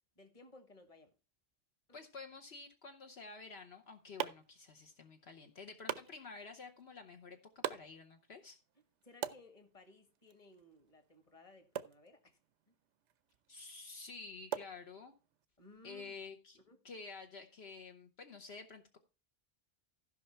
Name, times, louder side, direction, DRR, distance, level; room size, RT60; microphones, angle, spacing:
voice 1, 0.2-1.1 1.9-2.0 9.0-12.4 12.7-12.8 15.6-16.2 16.7-16.8, left 2 dB, 30° left, 1.6 m, -60 dB
voice 2, 1.9-8.6 13.5-15.1 15.8-16.6 16.8-19.0, left 4 dB, 65° left, 1.2 m, -50 dB
sound 1, 3.5-15.5, right 10 dB, 90° right, 1.0 m, -47 dB
15.5 x 5.4 x 4.4 m
omnidirectional pair, 1.2 m